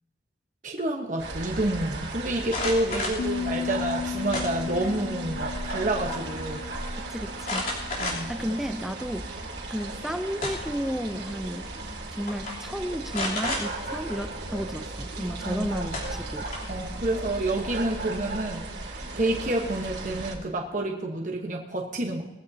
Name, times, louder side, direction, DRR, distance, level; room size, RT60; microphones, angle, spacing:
voice 1, 0.6-6.6 7.9-8.3 15.4-15.7 16.7-22.2, right 1 dB, 45° right, 0 dB, 1.2 m, -29 dB
sound 1, 1.2-20.3, right 2 dB, 75° right, 2.4 m, -36 dB
sound 2, 2.4-3.2 4.3-4.9 5.3-5.9 6.1-6.2 7.4-8.4 9.0-9.1 10.1-10.8 11.8-12.0 12.3-12.5 13.1-13.6 15.4-15.5 15.9-16.8, left 2 dB, 50° left, 3.4 m, -32 dB
Piano, 3.2-8.8, left 7 dB, 85° left, 0.5 m, -36 dB
voice 2, 7.1-7.7 8.3-9.4 9.7-11.7 12.1-16.5, equal, ahead, 8 dB, 0.6 m, -32 dB
20.5 x 15.0 x 2.8 m, 1.0 s
head